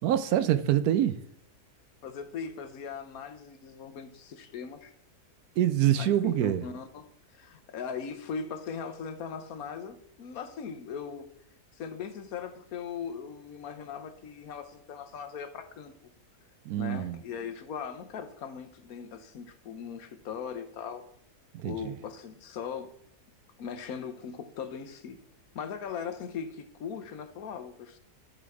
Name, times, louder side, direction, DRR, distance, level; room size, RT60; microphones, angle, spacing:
voice 1, 0.0-1.2 5.6-6.6 16.7-17.2 21.6-21.9, right 11 dB, 75° right, 1.0 m, -25 dB
voice 2, 2.0-4.9 5.9-11.3 11.7-16.1 16.8-21.1 21.6-22.9 23.6-25.2 25.5-28.0, left 6 dB, 65° left, 1.2 m, -39 dB
11.0 x 4.0 x 4.7 m
omnidirectional pair, 1.7 m